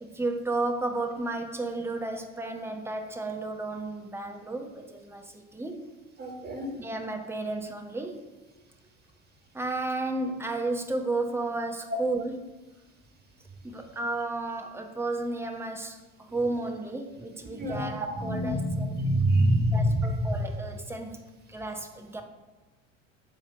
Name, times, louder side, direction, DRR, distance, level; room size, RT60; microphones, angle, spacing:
voice 1, 0.0-5.9 6.8-8.3 9.5-12.4 13.6-19.0 19.7-22.2, right 2 dB, 5° right, 4 dB, 0.9 m, -33 dB
voice 2, 6.2-6.7 17.6-17.9 18.2-20.0, right 1 dB, 25° right, 1 dB, 1.7 m, -25 dB
9.3 x 3.2 x 6.2 m, 1.2 s
figure-of-eight pair, 70°, 38 cm